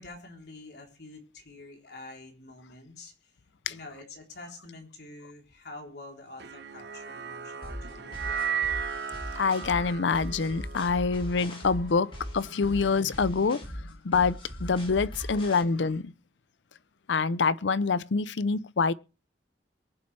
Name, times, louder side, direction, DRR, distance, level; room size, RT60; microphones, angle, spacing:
voice 1, 0.0-3.3 3.7-8.6, left 2 dB, 70° left, 3.5 m, -47 dB
sound 1, 6.4-12.8, right 7 dB, 70° right, 0.9 m, -36 dB
sound 2, 7.6-15.6, equal, 30° left, 2.6 m, -40 dB
voice 2, 9.4-16.1 17.1-18.9, left 4 dB, 90° left, 0.6 m, -26 dB
23.0 x 8.5 x 3.3 m
head